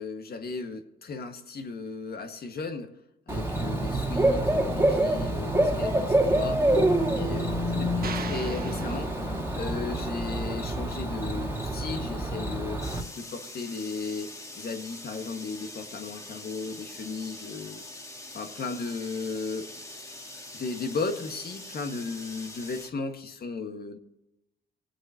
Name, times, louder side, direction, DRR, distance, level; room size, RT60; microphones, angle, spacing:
voice 1, 0.0-2.9 3.3-6.6 7.1-7.9 8.2-9.1 9.6-12.9 13.1-17.8 18.3-19.7 20.5-24.0, left 4 dB, 50° left, 5 dB, 1.8 m, -35 dB
Bird / Cricket, 3.3-13.0, right 1 dB, 10° right, 2.4 m, -26 dB
sound 1, 8.0-9.8, right 6 dB, 50° right, 1.2 m, -40 dB
sound 2, 12.8-22.9, left 1 dB, 15° left, 1.7 m, -43 dB
20.5 x 8.1 x 2.9 m, 0.92 s
cardioid pair, 90°, 20 cm